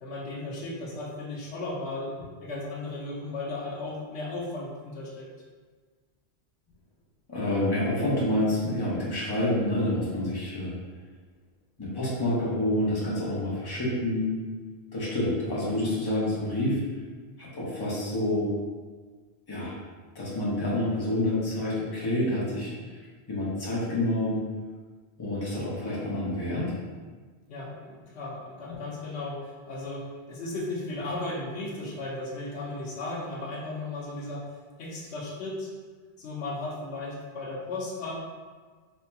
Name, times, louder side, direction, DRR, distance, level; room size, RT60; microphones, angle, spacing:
voice 1, 0.0-2.2 2.4-5.3 15.7-15.8 16.2-16.4 27.5-34.5 34.8-35.7 36.2-38.1, left 2 dB, 85° left, -4 dB, 1.0 m, -35 dB
voice 2, 7.3-10.7 11.8-14.3 14.9-16.8 17.4-18.5 19.5-19.8 20.1-23.0 23.3-24.4 25.2-26.7, left 1 dB, 25° left, -8 dB, 0.9 m, -28 dB
4.4 x 2.8 x 2.2 m, 1.4 s
omnidirectional pair, 1.1 m